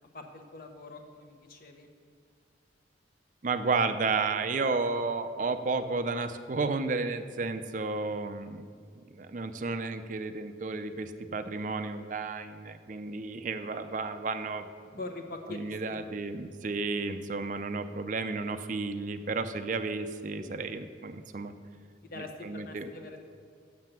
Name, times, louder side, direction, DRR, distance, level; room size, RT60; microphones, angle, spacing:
voice 1, 0.1-1.9 15.0-16.0 22.0-23.2, left 2 dB, 50° left, 5 dB, 0.9 m, -43 dB
voice 2, 3.4-8.6 9.0-14.7 15.5-21.5 22.2-22.9, right 3 dB, 45° right, 9 dB, 0.4 m, -32 dB
7.5 x 6.7 x 7.5 m, 2.2 s
head